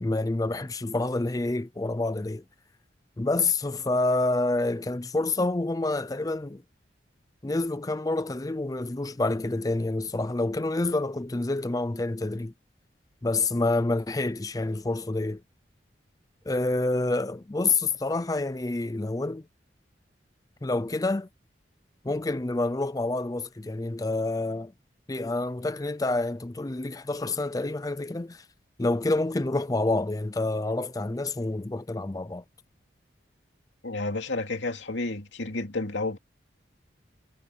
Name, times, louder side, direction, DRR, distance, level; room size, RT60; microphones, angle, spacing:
voice 1, 0.0-2.4 3.2-6.6 7.4-12.5 13.2-15.4 16.5-19.4 20.6-21.3 22.0-24.7 25.1-28.4 28.8-32.4, left 2 dB, 20° left, 0.5 m, -28 dB
voice 2, 33.8-36.2, left 2 dB, 90° left, 2.5 m, -31 dB
head